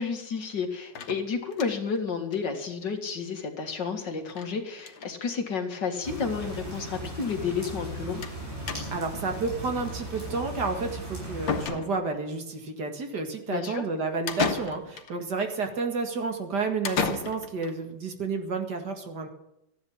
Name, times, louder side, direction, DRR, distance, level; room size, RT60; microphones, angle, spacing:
voice 1, 0.0-8.2 13.5-13.8, left 5 dB, 65° left, 4 dB, 2.5 m, -31 dB
sound 1, 1.0-2.0 2.3-2.4 2.7-2.8 3.0-3.1 4.3-4.5 4.8-5.1 6.0-6.1 6.4-6.5 8.2-8.4 8.7-9.2 10.9-11.0 11.5-12.3 14.3-15.1 16.8-17.7, left 6 dB, 85° left, 2.1 m, -32 dB
sound 2, 6.0-11.7, right 1 dB, 45° right, 8.3 m, -37 dB
voice 2, 8.9-19.3, right 4 dB, 60° right, 5 dB, 2.5 m, -31 dB
14.0 x 11.0 x 7.2 m, 0.85 s
omnidirectional pair, 2.0 m